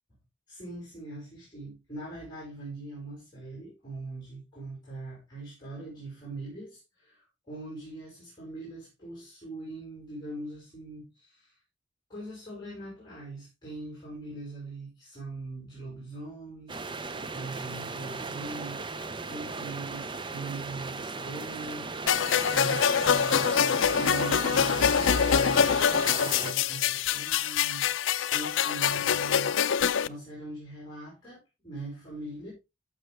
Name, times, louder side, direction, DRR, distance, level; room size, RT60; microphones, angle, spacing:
voice 1, 0.5-11.5 12.1-16.9 17.2-21.9 22.5-27.9 28.3-32.5, right 2 dB, 20° left, 5.0 m, -41 dB
sound 1, 16.7-26.5, right 3 dB, 25° right, 0.6 m, -37 dB
sound 2, 22.1-30.1, left 8 dB, 75° left, 0.5 m, -25 dB
13.0 x 6.8 x 3.4 m
head